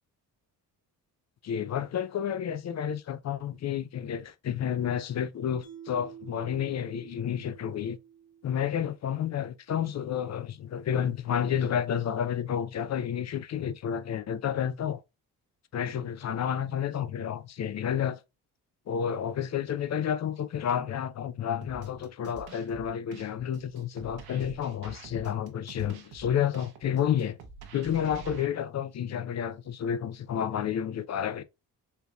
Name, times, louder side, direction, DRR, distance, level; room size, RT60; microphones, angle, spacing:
voice 1, 1.4-8.0 8.4-15.0 15.7-18.2 18.9-27.4 27.7-31.4, left 9 dB, 45° left, 0.5 m, -30 dB
Mallet percussion, 5.6-8.9, right 9 dB, 65° left, 1.3 m, -49 dB
sound 1, 21.6-28.5, right 5 dB, 70° right, 0.9 m, -48 dB
4.4 x 2.5 x 2.3 m
cardioid pair, 65°, 39 cm